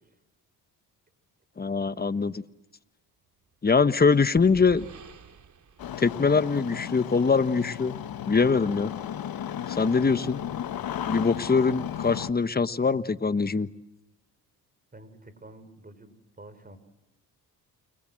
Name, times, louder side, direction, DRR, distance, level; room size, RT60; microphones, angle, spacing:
voice 1, 1.6-2.4 3.6-4.8 6.0-8.0 8.3-8.9 9.7-10.4 11.0-13.7, left 4 dB, 25° left, 13 dB, 1.3 m, -23 dB
sound 1, 3.5-7.2, right 6 dB, 50° right, 3.3 m, -49 dB
Engine starting, 5.8-12.3, left 10 dB, 65° left, 1.7 m, -35 dB
voice 2, 14.9-16.8, right 2 dB, 25° right, 12 dB, 5.7 m, -48 dB
29.5 x 25.0 x 7.8 m, 0.96 s
cardioid pair, 90°, 38 cm